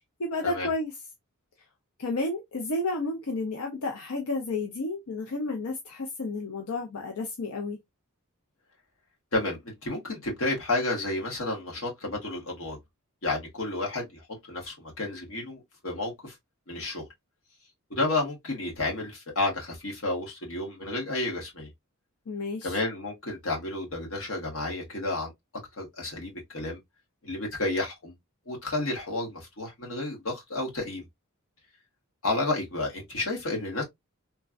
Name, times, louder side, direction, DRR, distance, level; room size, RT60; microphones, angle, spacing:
voice 1, 0.2-0.9 2.0-7.8 22.3-22.8, left 2 dB, 90° left, 0.6 m, -31 dB
voice 2, 9.3-12.8 13.2-14.2 14.5-16.3 16.7-17.1 17.9-21.7 22.6-25.3 25.8-26.8 27.2-28.1 28.5-31.0 32.2-33.8, left 2 dB, 65° left, 1.3 m, -31 dB
3.2 x 2.2 x 2.4 m
head